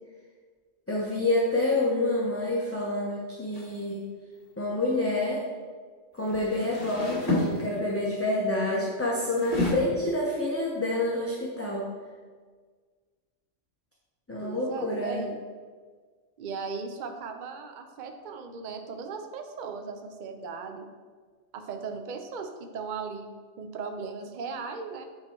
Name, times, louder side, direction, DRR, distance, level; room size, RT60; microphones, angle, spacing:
voice 1, 0.9-4.0 4.6-5.4 6.1-11.8 14.3-15.2, left 2 dB, 15° left, -5 dB, 0.8 m, -28 dB
sound 1, 3.5-3.8 6.2-8.0 9.2-9.7, left 1 dB, 40° left, 2.2 m, -30 dB
voice 2, 14.4-15.4 16.4-20.9 21.5-25.0, right 5 dB, 50° right, 6 dB, 0.7 m, -37 dB
8.9 x 3.7 x 4.5 m, 1.5 s
omnidirectional pair, 1.3 m